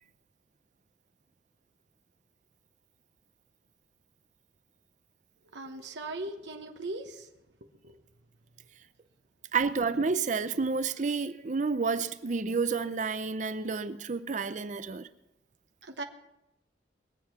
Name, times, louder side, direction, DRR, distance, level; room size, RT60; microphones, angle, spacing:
voice 1, 5.5-7.3 7.8-8.0 15.8-16.0, right 2 dB, 75° right, 1.1 m, -39 dB
voice 2, 9.5-15.1, right 4 dB, 40° right, 0.5 m, -30 dB
22.0 x 7.7 x 5.9 m
head